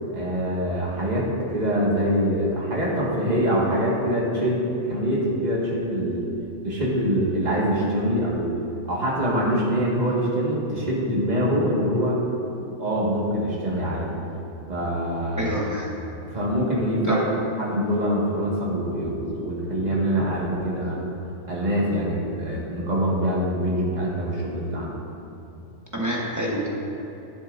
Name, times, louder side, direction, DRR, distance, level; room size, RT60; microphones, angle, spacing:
voice 1, 0.1-6.3 6.6-8.5 8.8-12.2 12.8-14.1 14.7-15.5 16.2-17.3 17.6-21.0 21.4-24.9, equal, 35° right, -5 dB, 1.8 m, -24 dB
voice 2, 15.4-15.9 17.0-17.2 25.9-26.7, equal, 15° right, -4 dB, 1.2 m, -27 dB
11.5 x 10.5 x 2.6 m, 3.0 s
omnidirectional pair, 1.4 m